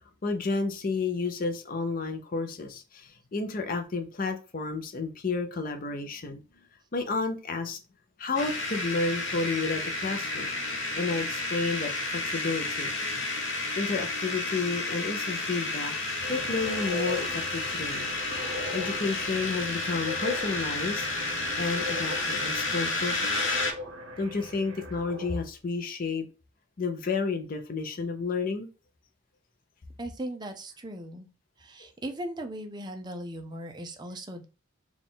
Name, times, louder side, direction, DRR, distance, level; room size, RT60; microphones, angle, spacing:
voice 1, 0.2-6.4 6.9-7.8 8.2-10.5 10.9-12.9 13.7-15.9 16.3-18.1 18.7-21.1 21.6-23.6 24.2-26.3 26.8-28.7, left 4 dB, 45° left, 0.5 m, -31 dB
sound 1, 8.4-23.7, left 2 dB, 70° left, 1.0 m, -31 dB
sound 2, 16.2-25.4, left 1 dB, 75° right, 0.7 m, -39 dB
voice 2, 30.0-31.3 31.6-34.5, right 1 dB, 20° right, 0.5 m, -38 dB
4.0 x 2.4 x 3.7 m
head